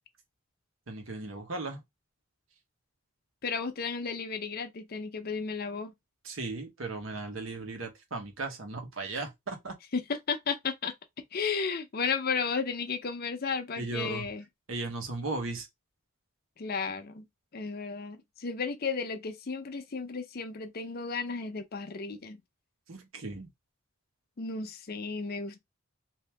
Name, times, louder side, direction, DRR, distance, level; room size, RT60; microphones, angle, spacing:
voice 1, 0.9-1.8 6.2-9.7 13.8-14.3 14.7-15.7 22.9-23.5, right 3 dB, 80° right, 1.1 m, -36 dB
voice 2, 3.4-5.9 9.9-10.9 11.3-14.4 16.6-17.3 17.5-22.4 24.4-25.6, left 5 dB, 50° left, 0.6 m, -33 dB
3.0 x 2.7 x 3.4 m
head